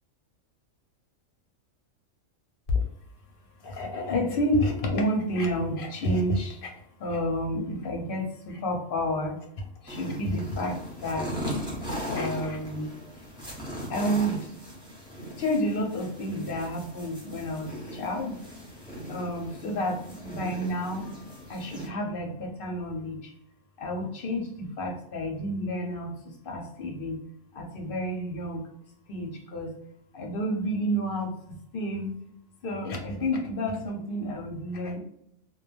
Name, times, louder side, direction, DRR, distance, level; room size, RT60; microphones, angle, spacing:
voice 1, 3.6-6.7 7.0-11.3 12.1-12.9 13.9-14.5 15.4-18.4 19.1-21.0 21.5-23.3 23.8-27.2 27.5-28.6 29.1-29.7 30.1-32.1 32.6-35.0, equal, 55° left, 2 dB, 0.6 m, -30 dB
sound 1, 9.9-21.9, equal, 5° right, 0.6 m, -38 dB
2.2 x 2.2 x 3.2 m, 0.74 s
omnidirectional pair, 1.4 m